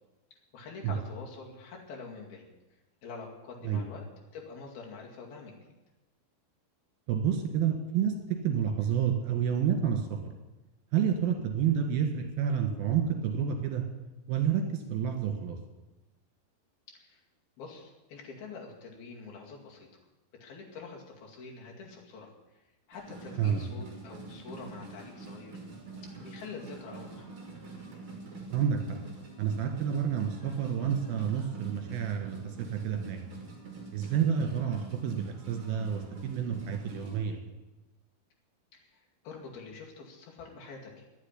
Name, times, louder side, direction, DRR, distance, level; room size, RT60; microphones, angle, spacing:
voice 1, 0.5-2.5 3.0-4.1 4.3-5.7 16.9-17.2 17.6-19.9 20.4-22.6 22.9-25.6 26.0-27.3 34.0-34.3 38.7-41.0, left 4 dB, 65° left, -1 dB, 4.0 m, -46 dB
voice 2, 7.1-10.1 10.9-13.8 14.3-15.6 23.4-23.6 28.5-29.0 29.4-33.2 33.9-37.4, right 8 dB, 65° right, 4 dB, 3.6 m, -29 dB
sound 1, 22.9-37.2, right 3 dB, 35° right, 2.9 m, -46 dB
11.0 x 9.8 x 9.9 m, 1.1 s
omnidirectional pair, 4.8 m